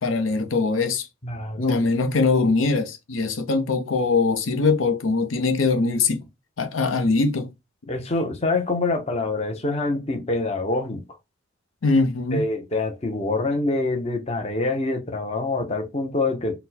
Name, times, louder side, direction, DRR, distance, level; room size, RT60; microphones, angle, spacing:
voice 1, 0.0-1.1 1.6-6.2 6.6-7.5 11.8-12.4, left 3 dB, 90° left, 0.7 m, -22 dB
voice 2, 1.2-1.8 7.9-11.0 12.3-16.6, left 2 dB, 30° left, 0.8 m, -25 dB
4.3 x 2.2 x 4.1 m
head